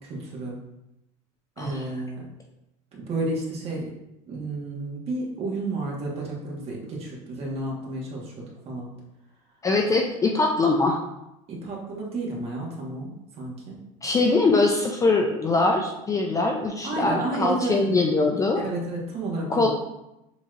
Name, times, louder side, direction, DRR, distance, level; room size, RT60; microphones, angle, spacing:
voice 1, 0.1-0.6 1.6-2.2 2.9-3.9 4.3-8.9 11.5-13.1 13.4-13.7 15.6-15.7 16.8-18.0 18.6-19.7, right 2 dB, 35° right, -3 dB, 1.4 m, -31 dB
voice 2, 1.6-1.9 9.6-11.0 14.0-18.6 19.5-19.7, left 3 dB, 20° left, 2 dB, 0.4 m, -22 dB
6.8 x 3.0 x 2.5 m, 0.88 s
supercardioid pair, 125°, 17 cm